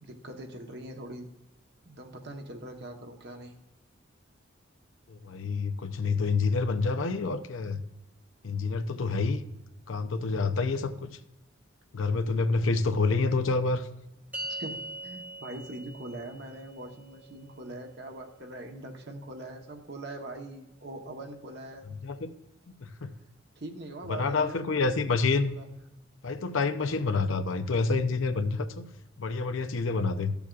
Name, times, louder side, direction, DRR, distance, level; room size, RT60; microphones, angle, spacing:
voice 1, 0.0-1.3 1.8-3.6 10.2-10.4 14.5-21.9 23.6-24.8 25.5-25.7, right 1 dB, 60° right, 3 dB, 1.1 m, -42 dB
voice 2, 5.1-7.8 8.4-9.4 9.9-11.1 11.9-13.9 22.0-22.3 22.7-23.1 24.1-25.6 26.2-28.8 29.2-30.3, left 4 dB, 90° left, 9 dB, 0.6 m, -28 dB
sound 1, 14.3-20.9, right 1 dB, 10° right, 0.7 m, -44 dB
13.5 x 7.0 x 2.4 m, 0.91 s
head